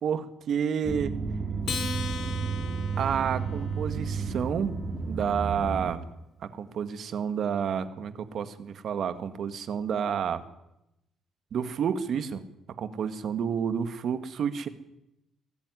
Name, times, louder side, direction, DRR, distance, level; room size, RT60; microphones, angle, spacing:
voice 1, 0.0-1.1 3.0-4.8 5.1-6.0 6.5-10.4 11.5-12.4 12.8-14.7, right 7 dB, 65° right, 10 dB, 2.0 m, -30 dB
sound 1, 0.8-5.9, right 5 dB, 35° right, 2.8 m, -32 dB
Acoustic guitar, 1.6-4.3, left 5 dB, 65° left, 3.7 m, -37 dB
22.5 x 14.5 x 9.9 m, 0.86 s
cardioid pair, 90°, 0 cm